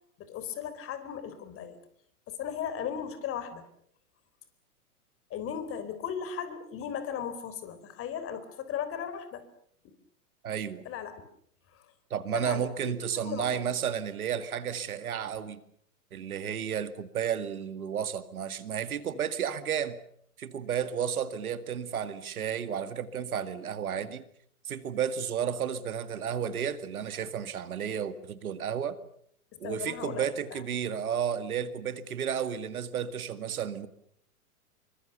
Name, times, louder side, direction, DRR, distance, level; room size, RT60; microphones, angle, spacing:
voice 1, 0.2-1.8 2.3-3.6 5.3-9.5 10.8-11.2 11.7-11.8 12.3-13.7 29.6-30.6, left 8 dB, 30° left, 12 dB, 4.2 m, -37 dB
voice 2, 10.4-10.9 12.1-15.6 16.1-20.0 20.4-24.2 24.6-29.0 29.6-33.9, right 8 dB, 70° right, 12 dB, 2.2 m, -32 dB
27.0 x 24.5 x 6.9 m, 0.66 s
hypercardioid pair, 110°, 45 cm